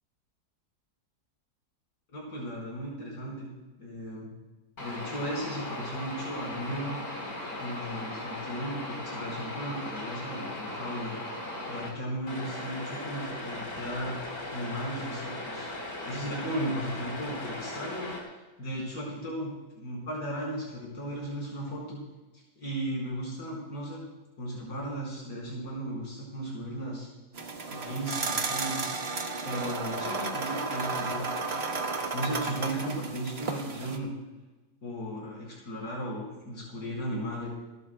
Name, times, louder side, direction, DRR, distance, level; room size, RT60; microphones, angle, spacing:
voice 1, 2.1-3.5 3.8-4.3 4.8-7.0 7.6-11.1 11.7-14.1 14.5-15.7 16.0-18.1 18.3-22.0 22.6-24.0 24.4-27.1 27.7-28.9 29.4-31.3 31.6-34.1 34.8-37.5, right 1 dB, 85° left, -4 dB, 5.2 m, -36 dB
sound 1, 4.8-11.9 12.3-18.2, left 1 dB, 60° left, 4.1 m, -38 dB
sound 2, 27.3-34.0, right 3 dB, 45° right, 1.3 m, -33 dB
29.0 x 12.0 x 2.2 m, 1.2 s
omnidirectional pair, 1.7 m